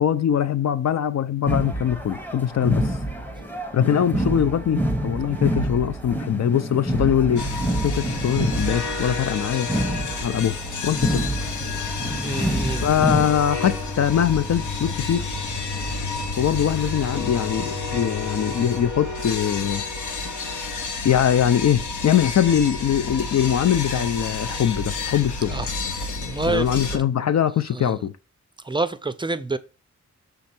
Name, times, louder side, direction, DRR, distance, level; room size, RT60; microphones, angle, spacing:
voice 1, 0.0-3.0 3.7-7.4 7.8-9.7 10.2-10.6 10.8-11.2 12.8-15.2 16.4-19.8 21.0-25.6 26.4-28.1, left 9 dB, 65° left, 0.5 m, -22 dB
sound 1, 1.5-13.3, right 1 dB, 5° left, 1.0 m, -27 dB
sound 2, 7.4-27.0, left 3 dB, 85° left, 1.1 m, -30 dB
sound 3, 11.1-18.9, left 4 dB, 25° left, 0.8 m, -35 dB
voice 2, 12.2-12.8 25.5-25.7 26.2-27.0 27.7-28.0 28.6-29.6, right 3 dB, 15° right, 0.3 m, -28 dB
6.4 x 3.5 x 5.8 m
wide cardioid pair, 155°, 29 cm